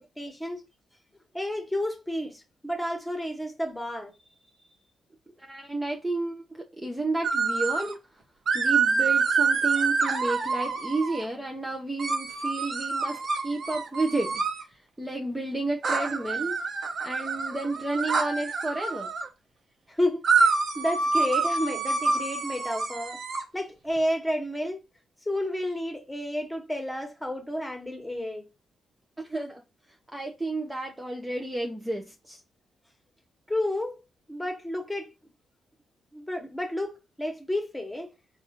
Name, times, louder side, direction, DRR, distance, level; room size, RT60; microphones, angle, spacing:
voice 1, 0.2-0.6 1.3-4.1 19.9-23.2 23.5-24.8 25.3-28.4 33.5-34.0 34.3-35.1 36.1-38.1, left 1 dB, 10° left, 1.5 m, -31 dB
voice 2, 5.4-8.0 8.5-14.4 15.0-16.6 17.0-19.1 29.2-29.6 30.1-32.4, right 2 dB, 15° right, 0.8 m, -31 dB
sound 1, 7.2-7.9 8.5-11.2 12.0-14.6 15.8-19.3 20.2-23.4, right 4 dB, 60° right, 0.9 m, -27 dB
4.0 x 2.5 x 4.3 m
supercardioid pair, 50°, 0 cm